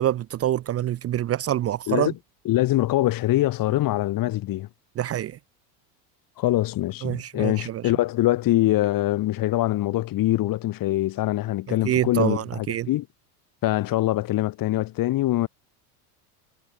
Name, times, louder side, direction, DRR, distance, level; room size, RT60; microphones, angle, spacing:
voice 1, 0.0-2.1 5.0-5.4 7.0-7.8 11.7-12.9, right 12 dB, 30° right, 0.9 m, -26 dB
voice 2, 2.4-4.7 6.4-13.1 13.6-15.5, left 15 dB, 45° left, 4.5 m, -23 dB
supercardioid pair, 130°, 46 cm